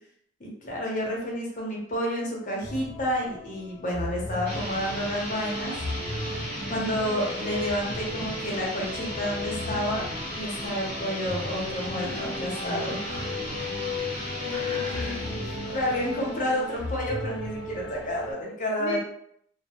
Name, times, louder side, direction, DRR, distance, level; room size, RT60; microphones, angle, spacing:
voice 1, 0.4-5.7 6.7-10.0 10.3-13.0 15.7-19.0, equal, 45° left, -3 dB, 0.8 m, -30 dB
sound 1, 2.6-18.3, left 3 dB, 90° left, 0.7 m, -36 dB
sound 2, 4.4-17.0, equal, 10° left, 1.0 m, -36 dB
Cough, 11.8-12.4 12.8-13.4 14.5-16.1, right 1 dB, 50° right, 0.6 m, -42 dB
voice 2, 14.4-15.8 18.8-19.0, left 5 dB, 70° left, 0 dB, 0.3 m, -38 dB
2.1 x 2.0 x 2.9 m, 0.70 s
head